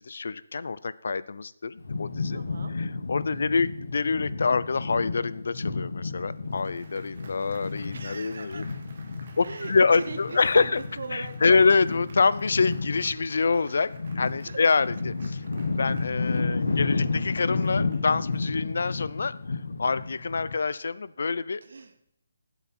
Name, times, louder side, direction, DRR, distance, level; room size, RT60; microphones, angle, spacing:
voice 1, 0.0-2.4 2.7-8.6 9.4-10.8 11.1-13.9 14.2-15.4 15.8-19.3 19.8-21.6, left 4 dB, 60° left, 17 dB, 0.6 m, -26 dB
sound 1, 1.8-20.5, left 3 dB, 80° left, 1.3 m, -32 dB
voice 2, 2.3-2.7 3.3-3.4 7.9-8.8 9.4-10.7 11.0-11.6 14.5-14.6 16.6-16.8 21.6-22.1, right 4 dB, 60° right, 7 dB, 1.0 m, -39 dB
Applause, 6.1-18.9, right 4 dB, 35° right, 1.7 m, -54 dB
15.0 x 8.1 x 4.3 m, 0.74 s
hypercardioid pair, 175°, 0 cm